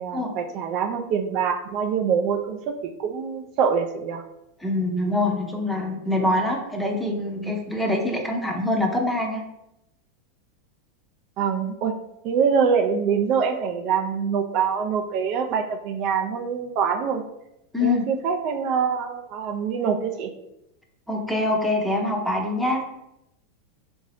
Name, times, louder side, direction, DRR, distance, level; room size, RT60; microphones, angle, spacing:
voice 1, 0.0-2.7 3.0-4.2 11.4-11.9 12.2-17.2 17.8-20.3, right 6 dB, 50° right, 5 dB, 0.4 m, -24 dB
voice 2, 4.6-9.4 17.7-18.0 21.1-22.8, left 2 dB, 5° left, 1 dB, 0.7 m, -24 dB
3.6 x 2.6 x 3.3 m, 0.85 s
supercardioid pair, 120°, 0 cm